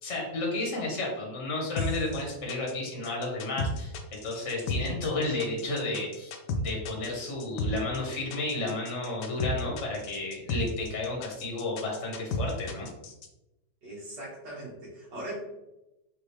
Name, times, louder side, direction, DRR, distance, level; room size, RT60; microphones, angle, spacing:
voice 1, 0.0-3.9 4.2-6.3 6.6-12.9, left 2 dB, 45° left, -1 dB, 1.2 m, -32 dB
sound 1, 1.8-13.3, left 2 dB, 75° left, 1.2 m, -33 dB
voice 2, 13.8-15.4, right 1 dB, 65° right, -9 dB, 1.7 m, -40 dB
4.8 x 2.8 x 3.2 m, 0.94 s
omnidirectional pair, 2.0 m